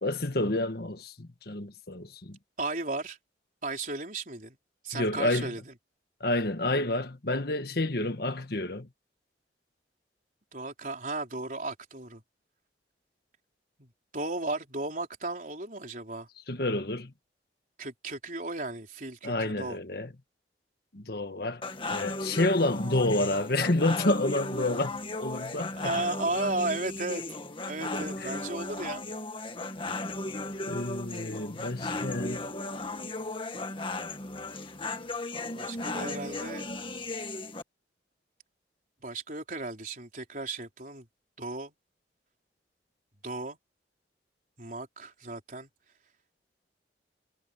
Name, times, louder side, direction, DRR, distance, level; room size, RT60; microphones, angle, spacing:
voice 1, 0.0-2.4 4.9-5.5 6.2-8.9 16.5-17.1 19.2-20.1 20.9-21.6 21.9-24.9 25.2-25.9 28.2-28.3 30.7-32.5, left 2 dB, 55° left, 1.5 m, -29 dB
voice 2, 2.6-3.2 3.6-4.6 4.8-5.6 10.5-12.2 13.8-16.3 17.8-19.8 25.8-27.4 27.6-29.1 35.4-36.7 39.0-41.1 41.4-41.7 43.2-43.6 44.6-45.7, right 2 dB, 45° right, 4.2 m, -35 dB
sound 1, 21.6-37.6, left 2 dB, 30° left, 1.8 m, -36 dB
head